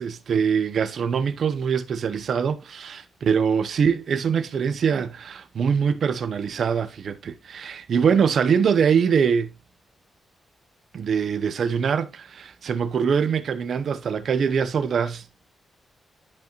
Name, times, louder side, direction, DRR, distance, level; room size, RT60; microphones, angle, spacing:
voice 1, 0.0-9.5 10.9-15.2, right 6 dB, 65° right, 0.8 m, -23 dB
11.0 x 5.3 x 3.0 m
cardioid pair, 90°, 0 cm